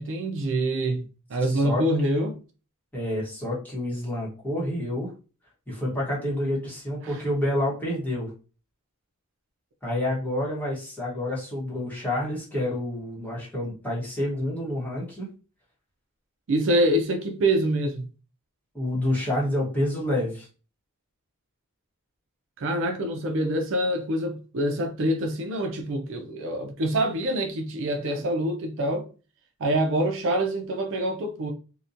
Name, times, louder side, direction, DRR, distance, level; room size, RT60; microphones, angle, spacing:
voice 1, 0.0-2.4 7.0-7.2 16.5-18.1 22.6-29.1 29.6-31.5, right 1 dB, 60° right, 0.4 m, -25 dB
voice 2, 1.4-1.9 2.9-5.1 5.7-8.3 9.8-15.3 18.7-20.5, left 1 dB, 10° left, 1.0 m, -28 dB
2.8 x 2.1 x 2.5 m
head